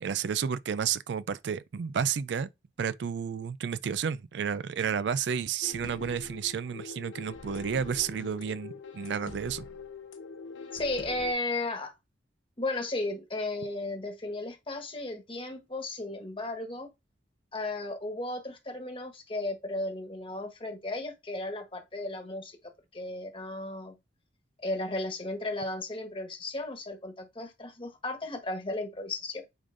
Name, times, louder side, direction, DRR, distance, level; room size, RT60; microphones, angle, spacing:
voice 1, 0.0-2.5 2.8-9.7, right 7 dB, 60° right, 0.4 m, -31 dB
sound 1, 5.6-11.3, left 4 dB, 80° left, 0.9 m, -44 dB
voice 2, 10.7-11.9 12.6-16.9 17.5-22.6 22.9-23.9 24.6-29.4, left 2 dB, 30° left, 1.4 m, -35 dB
8.8 x 5.0 x 2.6 m
head